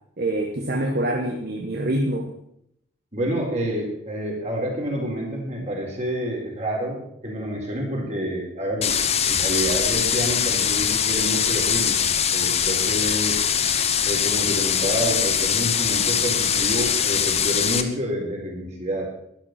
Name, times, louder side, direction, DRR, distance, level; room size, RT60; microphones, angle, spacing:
voice 1, 0.2-2.3, right 1 dB, 50° right, 3 dB, 1.4 m, -25 dB
voice 2, 3.1-9.0 9.3-12.1 12.3-13.4 14.0-19.1, equal, 35° right, -1 dB, 4.4 m, -28 dB
sound 1, 8.8-17.8, left 8 dB, 30° left, 1.0 m, -22 dB
12.0 x 11.5 x 5.9 m, 0.74 s
head